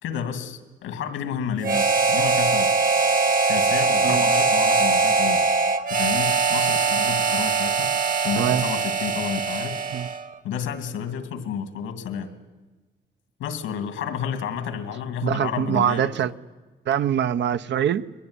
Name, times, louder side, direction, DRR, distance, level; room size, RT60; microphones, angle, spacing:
voice 1, 0.0-2.8 3.4-5.4 5.9-9.8 10.4-12.3 13.4-16.1, left 7 dB, 90° left, 2.5 m, -31 dB
Harmonica, 1.6-10.3, right 4 dB, 45° right, 1.5 m, -21 dB
voice 2, 15.2-16.3 16.9-18.1, right 9 dB, 65° right, 0.9 m, -23 dB
21.5 x 21.5 x 9.8 m
cardioid pair, 90°, 20 cm